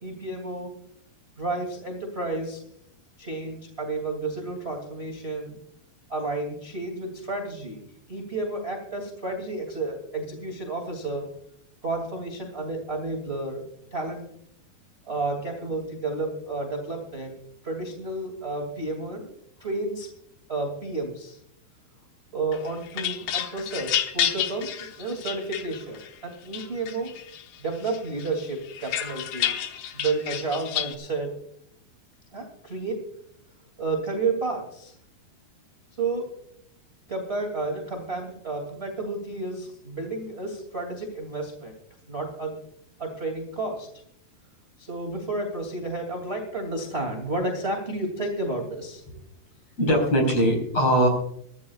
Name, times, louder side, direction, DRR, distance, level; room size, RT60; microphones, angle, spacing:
voice 1, 0.0-0.7 1.4-2.6 3.2-5.6 6.1-11.3 11.8-13.6 13.9-14.3 15.1-17.4 17.6-19.3 19.6-20.1 20.5-21.4 22.3-27.1 27.6-29.6 29.9-31.3 32.3-33.0 33.8-34.9 36.0-36.3 37.1-41.7 42.1-42.6 43.0-43.9 44.8-49.0, right 2 dB, 20° right, 2 dB, 2.1 m, -31 dB
sound 1, 22.5-26.1 26.5-27.4 27.8-30.9, left 10 dB, 75° left, 3.0 m, -30 dB
voice 2, 49.8-51.1, equal, 40° left, 2 dB, 5.5 m, -21 dB
23.5 x 13.5 x 2.4 m, 0.69 s
omnidirectional pair, 4.7 m